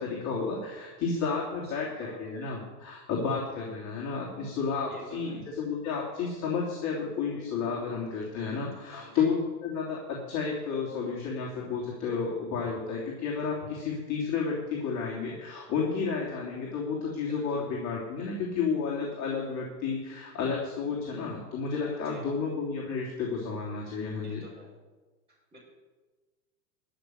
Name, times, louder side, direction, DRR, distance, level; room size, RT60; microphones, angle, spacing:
voice 1, 0.0-24.4, left 5 dB, 35° left, -4 dB, 3.2 m, -31 dB
voice 2, 1.6-2.4 4.9-5.4 8.9-9.3 17.3-17.7 21.7-22.3 24.2-24.7 25.3-25.6, right 2 dB, 10° right, -10 dB, 4.8 m, -50 dB
13.5 x 6.1 x 9.8 m, 1.3 s
supercardioid pair, 130°, 50 cm